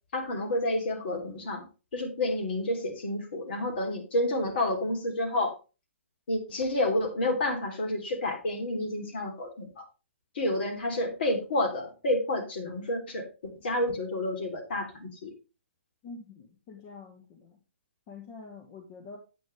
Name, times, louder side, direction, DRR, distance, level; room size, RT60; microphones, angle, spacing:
voice 1, 0.1-1.7 1.9-5.6 6.3-9.8 10.3-13.3 13.6-15.3, left 1 dB, 55° left, 2 dB, 3.1 m, -29 dB
voice 2, 16.0-17.6 18.1-19.2, left 4 dB, 30° left, 3 dB, 1.5 m, -46 dB
8.7 x 8.4 x 3.3 m, 0.30 s
figure-of-eight pair, 130°, 7 cm